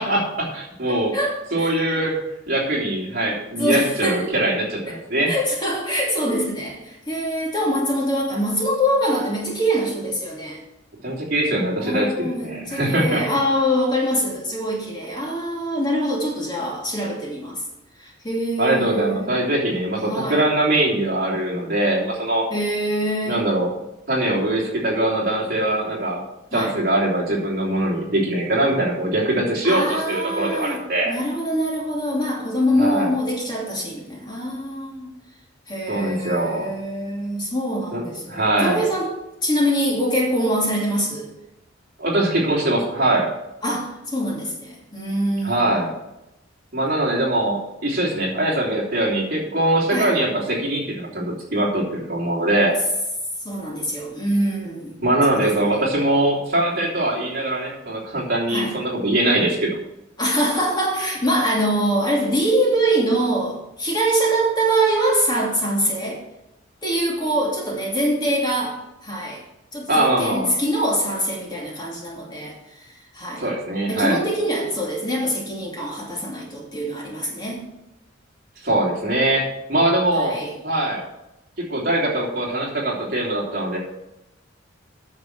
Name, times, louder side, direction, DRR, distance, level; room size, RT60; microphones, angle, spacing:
voice 1, 0.0-1.1 1.5-2.2 2.5-5.3 11.0-13.2 18.6-22.5 23.3-23.7 24.1-26.2 26.5-31.2 32.8-33.1 35.9-36.7 37.9-38.8 42.0-43.3 45.4-45.9 46.7-52.8 55.0-59.7 69.9-70.5 73.4-74.2 78.6-80.4 80.6-81.0 81.6-83.8, right 1 dB, 50° right, -3 dB, 3.1 m, -22 dB
voice 2, 1.1-1.7 3.6-4.4 4.9-5.0 5.3-10.6 11.8-17.6 18.0-19.4 20.0-20.4 22.5-23.5 26.5-26.7 29.6-35.1 35.7-39.1 39.4-41.3 43.6-45.9 49.9-50.1 53.4-55.0 55.3-55.7 58.5-58.7 60.2-66.2 66.8-68.8 69.0-69.4 69.7-73.5 73.9-77.6 80.1-80.5, equal, 20° left, -3 dB, 2.7 m, -24 dB
9.5 x 6.5 x 7.2 m, 0.90 s
head